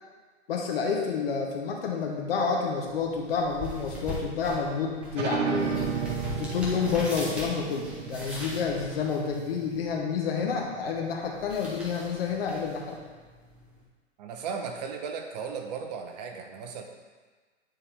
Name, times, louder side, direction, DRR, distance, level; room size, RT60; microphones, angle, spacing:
voice 1, 0.5-5.9 6.4-13.0, left 5 dB, 50° left, 0 dB, 1.3 m, -29 dB
sound 1, 2.8-13.8, left 1 dB, 5° right, 0.4 m, -42 dB
sound 2, 5.1-10.4, right 6 dB, 75° right, 1.1 m, -33 dB
voice 2, 14.2-16.8, right 6 dB, 35° right, 4 dB, 0.7 m, -36 dB
9.1 x 4.2 x 3.4 m, 1.4 s
hypercardioid pair, 135°, 38 cm